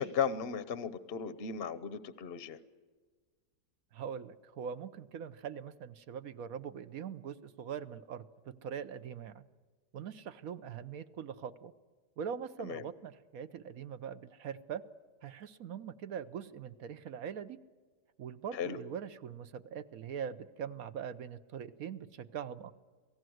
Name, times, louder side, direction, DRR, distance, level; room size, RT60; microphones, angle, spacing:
voice 1, 0.0-2.6 12.6-12.8 18.5-18.8, left 7 dB, 45° left, 14 dB, 1.0 m, -36 dB
voice 2, 3.9-9.5 9.9-11.7 12.2-14.8 15.2-17.6 18.2-22.7, right 7 dB, 60° right, 13 dB, 1.2 m, -42 dB
28.0 x 18.5 x 7.9 m, 1.5 s
omnidirectional pair, 1.8 m